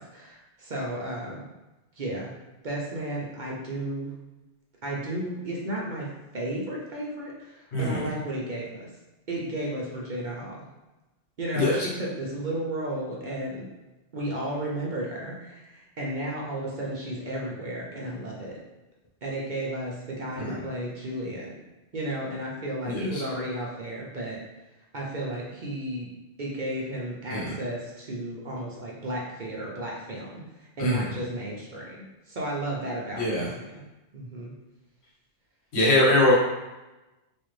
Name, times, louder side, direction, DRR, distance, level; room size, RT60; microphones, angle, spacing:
voice 1, 0.0-1.5 2.0-2.3 2.6-4.1 4.8-6.1 6.3-8.9 9.3-10.6 11.4-13.7 14.1-18.6 19.2-21.6 21.9-24.4 24.9-26.1 26.4-30.4 30.8-33.8 34.1-34.5, right 1 dB, 50° right, -4 dB, 0.7 m, -33 dB
voice 2, 22.9-23.2 27.3-27.5 30.8-31.0 33.2-33.5 35.7-36.3, left 1 dB, 65° left, -5 dB, 1.3 m, -23 dB
4.1 x 2.4 x 3.2 m, 1.1 s
omnidirectional pair, 1.2 m